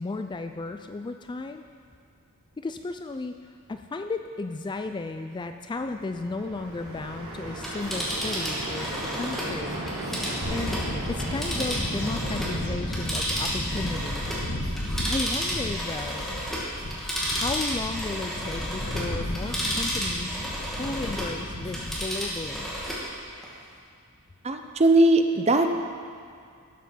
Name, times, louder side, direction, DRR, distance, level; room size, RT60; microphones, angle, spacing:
voice 1, 0.0-1.6 2.6-3.4 3.7-9.8 10.5-10.8 11.1-14.3 15.1-16.4 17.3-20.4 20.7-22.8, left 3 dB, 20° left, 7 dB, 0.3 m, -34 dB
sound 1, 5.8-15.8, right 1 dB, 80° right, 2.7 m, -36 dB
Telephone, 7.5-12.6 12.9-21.3 21.6-23.1 23.4-23.5, equal, ahead, 2.1 m, -32 dB
Bird / Wind, 10.4-23.2, left 1 dB, 75° left, 1.5 m, -35 dB
voice 2, 24.4-25.7, right 2 dB, 30° right, 6 dB, 0.7 m, -19 dB
12.0 x 8.2 x 5.7 m, 2.3 s
head